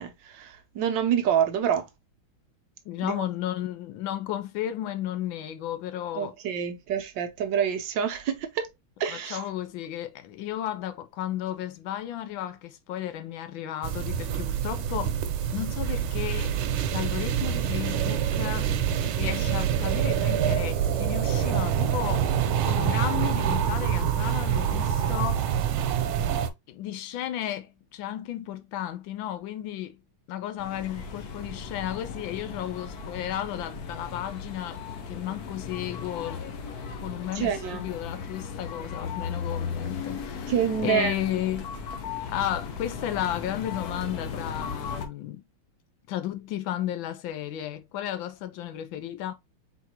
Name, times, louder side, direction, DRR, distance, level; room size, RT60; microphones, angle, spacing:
voice 1, 0.0-1.9 3.0-3.3 6.1-8.7 9.0-9.5 37.3-37.9 40.5-41.1, right 8 dB, 70° right, 1.3 m, -27 dB
voice 2, 2.9-6.3 9.1-15.2 15.5-22.3 22.6-25.5 26.7-30.0 30.3-36.5 37.0-40.6 40.8-41.8 42.3-45.4 46.1-49.3, left 12 dB, 75° left, 1.3 m, -33 dB
sound 1, 13.8-26.5, right 9 dB, 90° right, 1.5 m, -26 dB
sound 2, 30.6-45.1, left 6 dB, 60° left, 1.2 m, -36 dB
4.3 x 4.1 x 2.8 m
omnidirectional pair, 2.3 m